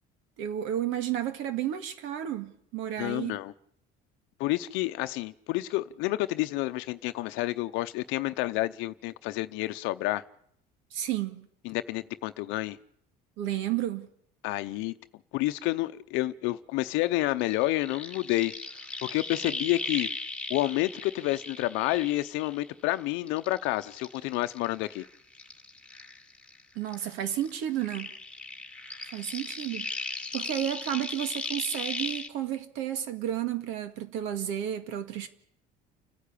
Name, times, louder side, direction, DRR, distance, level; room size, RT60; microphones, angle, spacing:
voice 1, 0.4-3.4 10.9-11.5 13.4-14.1 26.8-28.2 29.1-29.9 30.3-35.3, right 11 dB, 80° right, 2.0 m, -32 dB
voice 2, 3.0-3.5 4.4-10.2 11.6-12.8 14.4-14.9 15.3-18.5 19.0-20.1 20.5-25.1, left 18 dB, 80° left, 0.7 m, -29 dB
sound 1, 17.4-22.9 23.3-26.6 26.9-32.3, left 3 dB, 5° left, 2.2 m, -38 dB
30.0 x 10.5 x 8.5 m
cardioid pair, 110°, 20 cm